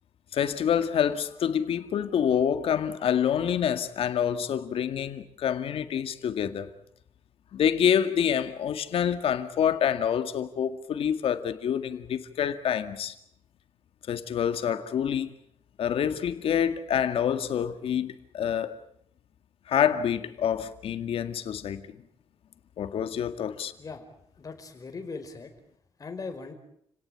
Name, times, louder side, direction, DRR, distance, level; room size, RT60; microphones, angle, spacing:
voice 1, 0.3-6.7 7.5-13.1 14.1-15.3 15.8-18.8 19.7-21.9 22.8-23.7, left 8 dB, 80° left, 2.0 m, -27 dB
voice 2, 24.4-25.5 26.0-26.5, left 4 dB, 40° left, 4.6 m, -39 dB
30.0 x 18.0 x 8.8 m
cardioid pair, 125°, 10 cm